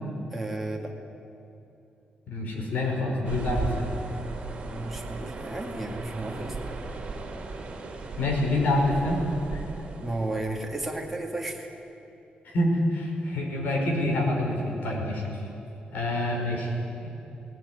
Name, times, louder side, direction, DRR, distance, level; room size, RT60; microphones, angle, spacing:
voice 1, 0.3-1.0 4.6-6.6 10.0-11.7, right 2 dB, 5° right, -1 dB, 2.1 m, -33 dB
voice 2, 2.3-3.9 8.2-9.2 9.5-9.6 12.4-15.2 15.9-16.7, left 1 dB, 70° left, 0 dB, 5.3 m, -26 dB
sound 1, 3.2-11.4, right 3 dB, 40° right, 3.0 m, -37 dB
18.5 x 18.0 x 9.8 m, 3.0 s
wide cardioid pair, 180°, 3 cm